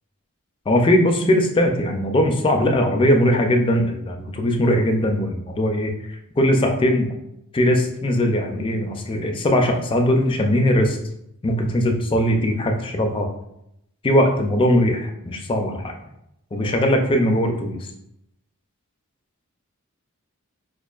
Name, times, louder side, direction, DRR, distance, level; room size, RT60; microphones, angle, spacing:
voice 1, 0.7-7.1 7.5-11.0 11.4-13.3 14.0-15.9 16.5-17.9, left 1 dB, 25° left, 3 dB, 0.3 m, -20 dB
5.0 x 2.4 x 2.3 m, 0.80 s
head